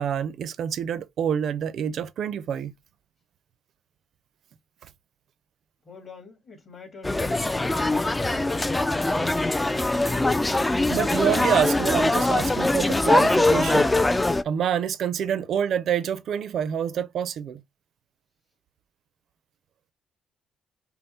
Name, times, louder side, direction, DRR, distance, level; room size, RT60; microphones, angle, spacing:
voice 1, 0.0-2.7 10.9-14.0 14.4-17.6, right 8 dB, 70° right, 0.6 m, -27 dB
voice 2, 5.8-8.4 15.2-15.4, left 4 dB, 40° left, 2.2 m, -46 dB
sound 1, 7.0-14.4, left 2 dB, 15° left, 0.4 m, -22 dB
5.5 x 2.1 x 4.2 m
cardioid pair, 90°, 0 cm